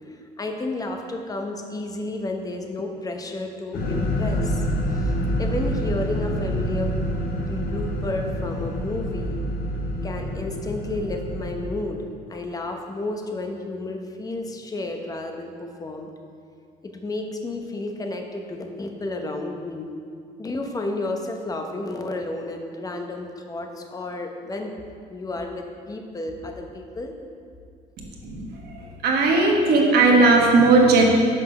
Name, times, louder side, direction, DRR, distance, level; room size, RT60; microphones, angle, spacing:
voice 1, 0.1-4.6 4.9-5.1 5.4-7.0 7.5-9.4 10.0-12.0 12.3-16.1 16.9-19.9 20.4-24.7 25.1-27.1, left 2 dB, 20° left, 4 dB, 0.8 m, -31 dB
sound 1, 3.7-11.7, equal, 60° left, 1.3 m, -27 dB
voice 2, 28.0-28.7 29.0-31.0, right 3 dB, 70° right, -1 dB, 1.2 m, -17 dB
6.0 x 5.0 x 5.7 m, 2.3 s
cardioid pair, 110°, 17 cm